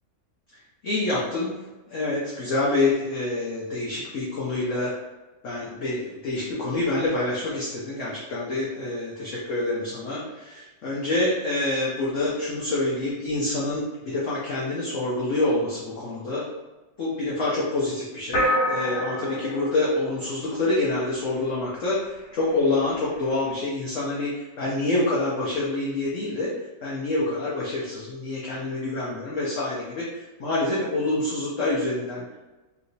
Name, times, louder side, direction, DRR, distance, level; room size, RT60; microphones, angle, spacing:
voice 1, 0.8-1.5 1.9-5.0 5.4-16.4 17.0-26.5 26.8-32.4, left 2 dB, 60° left, -6 dB, 0.8 m, -27 dB
sound 1, 18.3-21.0, equal, 75° left, 1.5 m, -27 dB
3.2 x 2.9 x 2.7 m, 1.1 s
omnidirectional pair, 2.0 m